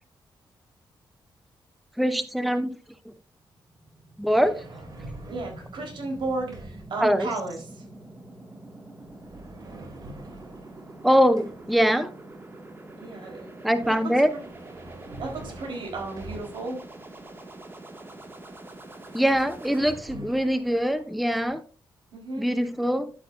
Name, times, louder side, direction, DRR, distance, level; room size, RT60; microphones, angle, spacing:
voice 1, 2.0-2.8 4.2-4.6 7.0-7.3 11.0-12.1 13.6-14.3 19.1-21.6 22.4-23.1, equal, ahead, 0.7 m, -23 dB
sound 1, 3.4-19.9, right 2 dB, 25° right, 1.9 m, -45 dB
sound 2, 4.3-7.0 9.0-11.8 14.0-16.9 18.8-18.9 19.1-21.5, right 2 dB, 50° right, 2.9 m, -45 dB
voice 2, 5.3-7.6 13.0-13.5 13.8-14.4 15.2-16.8 22.1-22.5, right 3 dB, 75° right, 4.1 m, -34 dB
11.0 x 9.0 x 2.6 m
cardioid pair, 105°, 8 cm